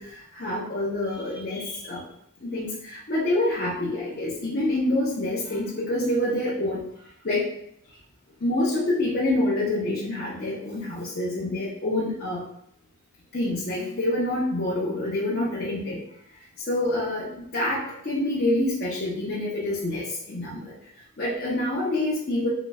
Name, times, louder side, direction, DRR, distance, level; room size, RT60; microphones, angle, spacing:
voice 1, 0.0-2.0 2.4-6.8 7.2-7.5 8.4-12.4 13.3-16.0 16.7-20.6 21.2-22.5, left 1 dB, 45° left, -8 dB, 0.7 m, -27 dB
3.9 x 3.1 x 2.3 m, 0.74 s
head